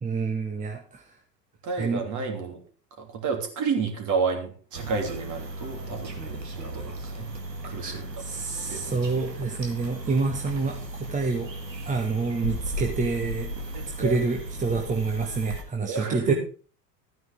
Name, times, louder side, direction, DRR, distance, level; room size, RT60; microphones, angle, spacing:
voice 1, 0.0-1.0 1.8-2.0 7.8-11.5 11.8-13.5 14.0-16.3, right 4 dB, 15° right, 2 dB, 1.2 m, -28 dB
voice 2, 1.6-2.6 3.0-6.2 6.5-7.3 7.6-8.4 8.7-8.9 13.7-14.2 15.8-16.3, right 5 dB, 35° right, 4 dB, 2.9 m, -30 dB
sound 1, 4.7-15.6, right 1 dB, 90° right, 1.8 m, -36 dB
13.0 x 9.3 x 3.6 m, 0.40 s
hypercardioid pair, 85°, 49 cm